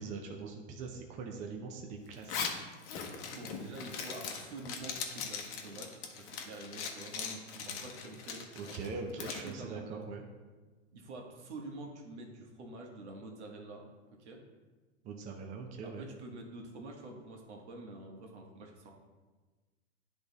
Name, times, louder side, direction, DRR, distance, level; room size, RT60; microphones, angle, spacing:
voice 1, 0.0-2.4 8.5-10.2 15.0-16.1, right 4 dB, 20° right, 2 dB, 0.5 m, -42 dB
Zipper (clothing), 2.1-9.5, left 6 dB, 35° left, 0.9 m, -40 dB
voice 2, 3.3-9.0 9.4-10.0 10.9-13.8 14.2-14.4 15.8-18.9, right 2 dB, 65° right, 1 dB, 1.5 m, -47 dB
9.7 x 3.5 x 4.0 m, 1.3 s
hypercardioid pair, 120°, 36 cm